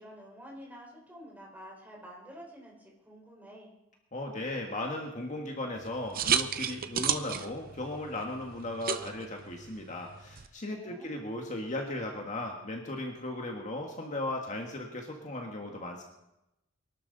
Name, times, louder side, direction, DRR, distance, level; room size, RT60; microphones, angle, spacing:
voice 1, 0.0-3.7 10.7-11.3, equal, 10° right, -3 dB, 4.9 m, -49 dB
voice 2, 4.1-16.0, left 1 dB, 40° left, 1 dB, 1.7 m, -37 dB
sound 1, 5.7-10.5, right 8 dB, 45° right, 0.8 m, -34 dB
23.0 x 12.0 x 4.1 m, 0.90 s
head